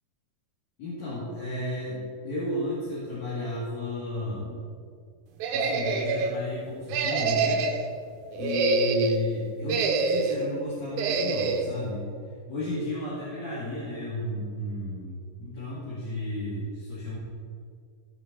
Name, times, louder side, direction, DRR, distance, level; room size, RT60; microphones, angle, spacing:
voice 1, 0.8-4.6 5.5-7.6 8.4-12.1 12.5-17.2, left 1 dB, 65° left, -10 dB, 3.8 m, -33 dB
sound 1, 5.4-6.3 6.9-7.9 8.3-9.2 9.7-10.4 11.0-11.7, right 4 dB, 75° right, 2.2 m, -26 dB
17.5 x 6.5 x 4.1 m, 2.2 s
omnidirectional pair, 3.6 m